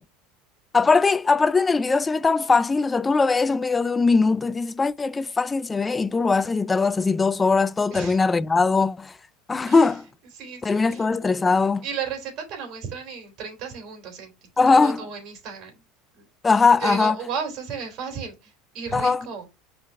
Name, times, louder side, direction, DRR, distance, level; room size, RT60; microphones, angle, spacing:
voice 1, 0.7-9.1 9.5-10.1 10.6-11.8 14.6-15.1 16.4-17.2 18.9-19.3, left 4 dB, 15° left, 0.3 m, -20 dB
voice 2, 10.3-11.0 11.8-14.3 14.7-15.8 16.2-16.3 16.8-19.5, right 6 dB, 50° right, 3.2 m, -34 dB
5.9 x 4.7 x 3.5 m
supercardioid pair, 130°, 0 cm